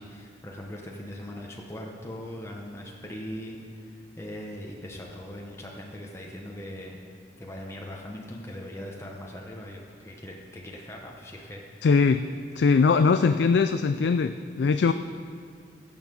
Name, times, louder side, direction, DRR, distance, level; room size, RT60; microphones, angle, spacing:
voice 1, 0.0-7.0 7.4-12.1, left 1 dB, 15° left, -1 dB, 1.0 m, -40 dB
voice 2, 11.8-12.2 12.6-14.9, left 5 dB, 70° left, 10 dB, 0.4 m, -21 dB
16.0 x 7.2 x 5.4 m, 2.2 s
head